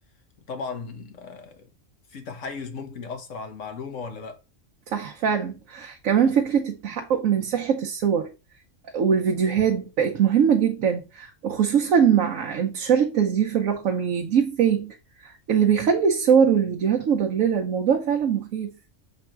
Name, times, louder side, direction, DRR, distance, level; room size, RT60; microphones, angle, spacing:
voice 1, 0.5-1.7 2.1-4.4, left 4 dB, 70° left, 1.5 m, -36 dB
voice 2, 4.9-8.3 8.9-15.0 15.2-18.7, right 7 dB, 90° right, 1.2 m, -22 dB
7.0 x 3.5 x 4.5 m
omnidirectional pair, 1.3 m